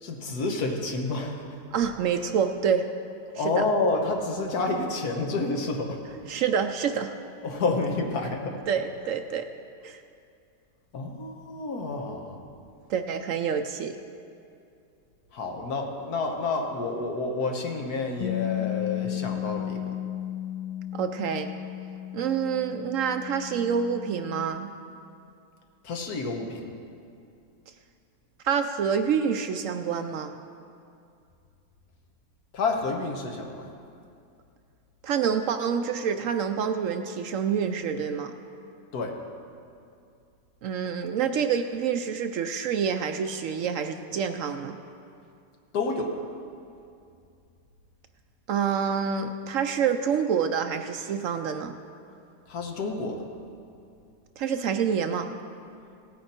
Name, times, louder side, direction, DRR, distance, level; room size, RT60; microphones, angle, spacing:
voice 1, 0.0-1.5 3.3-6.0 7.4-8.6 10.9-12.4 15.3-19.9 25.8-26.6 32.5-33.7 38.9-39.2 45.7-46.1 52.5-53.2, left 3 dB, 75° left, 3 dB, 1.7 m, -29 dB
voice 2, 1.7-2.9 3.4-3.6 6.3-7.2 8.7-9.5 9.8-10.0 12.9-14.0 20.9-21.5 22.1-24.7 28.4-30.3 35.0-38.4 40.6-44.8 48.5-51.7 54.4-55.3, right 7 dB, 65° right, 8 dB, 0.8 m, -27 dB
Bass guitar, 18.2-24.5, left 14 dB, 40° left, 0.5 m, -34 dB
17.5 x 9.4 x 4.4 m, 2.5 s
omnidirectional pair, 1.6 m